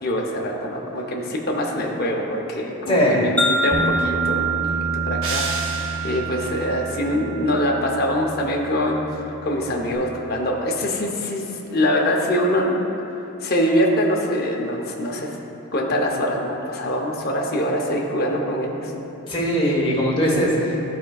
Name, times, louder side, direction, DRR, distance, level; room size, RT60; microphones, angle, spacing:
voice 1, 0.0-4.7 5.0-12.9 13.4-15.3 15.7-18.9, equal, 45° left, -1 dB, 0.7 m, -24 dB
voice 2, 2.9-3.2 19.3-20.8, equal, 25° left, -5 dB, 1.1 m, -20 dB
Wind chime, 3.4-7.7, right 3 dB, 5° left, 0.5 m, -26 dB
Bass guitar, 3.7-10.0, right 1 dB, 30° right, 0.8 m, -32 dB
sound 1, 5.2-6.5, right 3 dB, 65° right, 0.8 m, -30 dB
12.0 x 4.4 x 2.3 m, 2.9 s
head